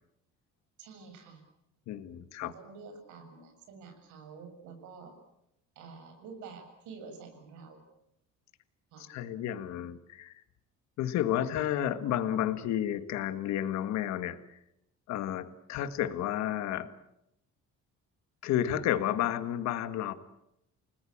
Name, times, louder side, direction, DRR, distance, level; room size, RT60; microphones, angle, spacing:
voice 1, 0.8-1.4 2.4-5.1 5.8-7.8 8.9-9.1, right 5 dB, 80° right, 5 dB, 7.7 m, -48 dB
voice 2, 1.9-2.5 9.0-10.3 11.0-14.4 15.1-16.9 18.4-20.1, left 11 dB, 65° left, 12 dB, 1.8 m, -31 dB
30.0 x 20.0 x 8.8 m, 0.82 s
cardioid pair, 165°, 29 cm